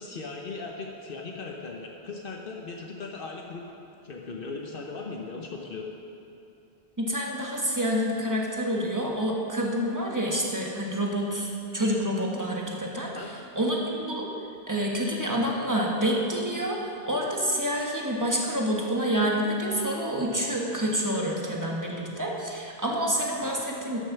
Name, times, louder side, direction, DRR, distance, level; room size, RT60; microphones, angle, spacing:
voice 1, 0.0-3.7 4.0-5.9 13.1-13.3, left 4 dB, 65° left, 0 dB, 1.0 m, -38 dB
voice 2, 7.0-13.1 13.6-14.3 14.7-24.0, equal, 20° right, -2 dB, 1.3 m, -28 dB
13.0 x 6.5 x 5.8 m, 2.7 s
omnidirectional pair, 1.0 m